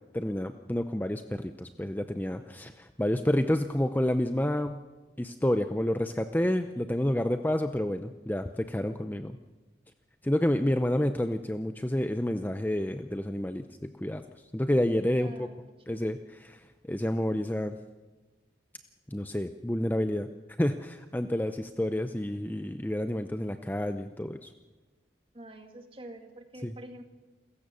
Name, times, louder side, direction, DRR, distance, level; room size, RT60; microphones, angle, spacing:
voice 1, 0.1-4.8 5.2-9.4 10.2-14.2 14.5-15.5 15.9-17.8 19.1-20.3 20.6-24.5 26.6-26.7, left 1 dB, 10° left, 8 dB, 0.6 m, -29 dB
voice 2, 15.2-15.6 15.9-16.0 25.3-27.0, right 1 dB, 30° right, 5 dB, 2.1 m, -46 dB
28.5 x 15.5 x 6.9 m, 1.2 s
head